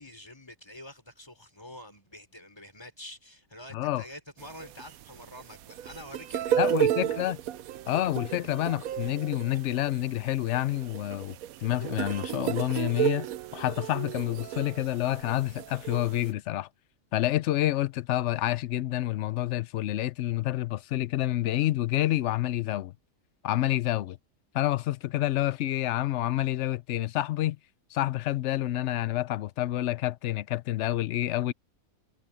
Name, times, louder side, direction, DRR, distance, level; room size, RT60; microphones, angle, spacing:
voice 1, 0.0-6.9, left 1 dB, 15° left, 3.6 m, -47 dB
voice 2, 3.7-4.0 6.6-7.4 7.9-11.4 11.6-13.3 13.5-16.7 17.1-22.9 23.4-24.2 24.5-27.6 27.9-31.5, left 14 dB, 65° left, 0.8 m, -28 dB
sound 1, 4.4-16.3, right 11 dB, 90° right, 1.1 m, -33 dB
omnidirectional pair, 1.5 m